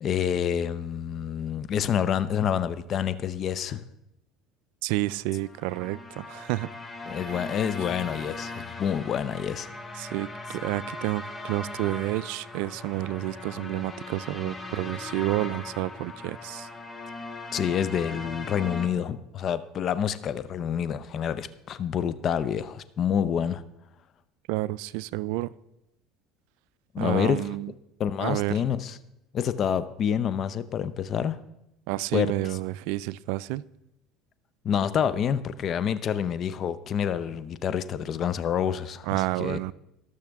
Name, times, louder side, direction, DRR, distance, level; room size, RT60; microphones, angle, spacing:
voice 1, 0.0-3.9 7.1-9.7 10.5-10.6 17.5-23.6 26.9-27.6 28.0-29.0 29.3-31.4 32.1-32.6 34.6-39.6, left 8 dB, 45° left, 15 dB, 0.7 m, -28 dB
voice 2, 4.8-6.7 7.3-7.4 10.0-16.7 24.5-25.5 27.0-27.7 28.2-28.6 31.9-33.6 39.0-39.7, right 17 dB, 75° right, 20 dB, 0.3 m, -30 dB
sound 1, 5.4-18.9, left 2 dB, 15° left, 1.4 m, -39 dB
18.5 x 6.5 x 3.6 m, 0.85 s
supercardioid pair, 100°, 0 cm